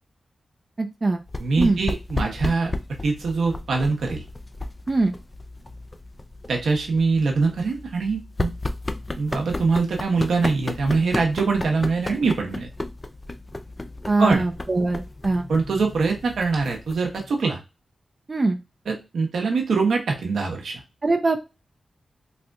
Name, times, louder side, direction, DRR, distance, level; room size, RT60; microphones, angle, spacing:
voice 1, 0.8-1.2 1.6-1.8 4.9-5.2 14.1-15.5 18.3-18.6 21.0-21.5, right 3 dB, 40° right, 5 dB, 0.4 m, -22 dB
sound 1, 1.3-17.4, left 2 dB, 25° left, 0.4 m, -34 dB
voice 2, 1.4-2.7 3.0-4.2 6.5-8.5 9.2-12.7 14.2-14.4 15.5-17.6 18.9-20.8, right 4 dB, 85° right, 2 dB, 0.9 m, -23 dB
4.1 x 2.5 x 2.2 m, 0.27 s
cardioid pair, 55°, 0 cm